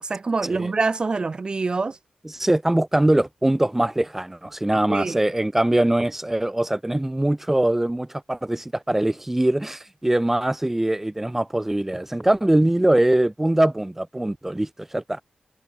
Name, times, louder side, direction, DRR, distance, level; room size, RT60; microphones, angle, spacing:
voice 1, 0.0-2.0 4.9-5.2, right 4 dB, 40° right, 2.0 m, -25 dB
voice 2, 2.3-15.2, right 1 dB, 15° right, 2.5 m, -22 dB
cardioid pair, 75°, 2 cm